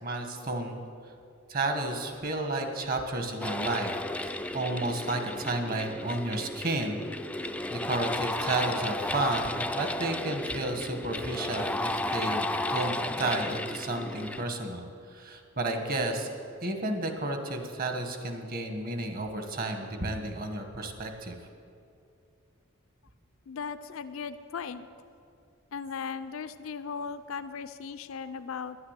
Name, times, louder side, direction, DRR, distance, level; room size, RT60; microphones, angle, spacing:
voice 1, 0.0-0.8 1.5-3.9 4.2-7.0 7.4-14.8 15.1-16.3 16.6-21.4, right 2 dB, 45° right, 5 dB, 1.4 m, -32 dB
sound 1, 3.4-14.4, left 1 dB, 5° left, 0.3 m, -33 dB
voice 2, 23.5-24.9 25.7-28.8, left 6 dB, 80° left, 11 dB, 0.5 m, -37 dB
10.5 x 9.7 x 8.1 m, 2.4 s
head